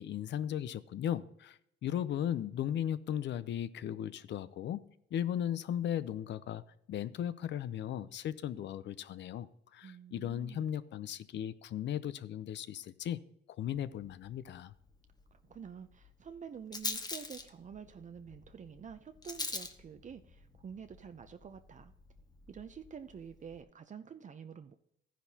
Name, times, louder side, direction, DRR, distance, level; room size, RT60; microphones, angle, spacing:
voice 1, 0.0-4.8 5.1-6.6 6.9-9.5 9.7-13.2 13.6-14.7, left 10 dB, 65° left, 15 dB, 0.6 m, -36 dB
voice 2, 9.8-10.8 15.3-21.9 22.5-24.7, right 7 dB, 40° right, 9 dB, 0.5 m, -48 dB
Rattle, 13.7-23.6, left 3 dB, 20° left, 0.9 m, -46 dB
13.5 x 10.0 x 2.8 m, 0.74 s
cardioid pair, 90°, 20 cm